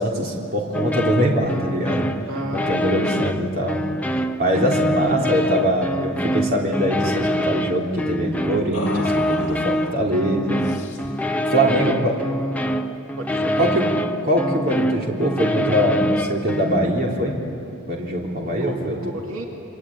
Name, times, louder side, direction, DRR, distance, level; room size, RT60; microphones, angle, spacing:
voice 1, 0.0-2.1 2.5-3.9 4.4-10.6 11.5-12.2 13.6-13.9 14.2-17.4 17.9-19.0, right 1 dB, 45° right, -2 dB, 3.6 m, -22 dB
sound 1, 0.7-17.0, equal, 5° left, 0.8 m, -25 dB
voice 2, 2.3-3.2 11.7-12.1 13.2-13.6 18.4-19.5, right 1 dB, 75° right, 0 dB, 2.7 m, -33 dB
sound 2, 6.8-7.1 8.7-10.0 10.6-11.2, left 2 dB, 35° left, 4.2 m, -35 dB
29.0 x 23.0 x 9.0 m, 2.6 s
head